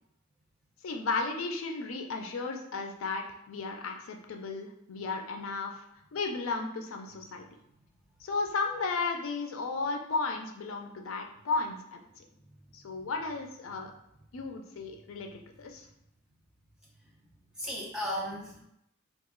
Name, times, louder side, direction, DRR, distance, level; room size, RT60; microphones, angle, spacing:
voice 1, 0.8-5.8 6.1-7.5 8.2-12.1 12.7-13.9 14.3-15.9, left 3 dB, 85° left, 3 dB, 0.5 m, -34 dB
voice 2, 12.3-13.1 15.2-15.3 17.0-17.1 17.5-18.6, equal, 5° right, -5 dB, 0.7 m, -38 dB
2.9 x 2.3 x 3.6 m, 0.79 s
head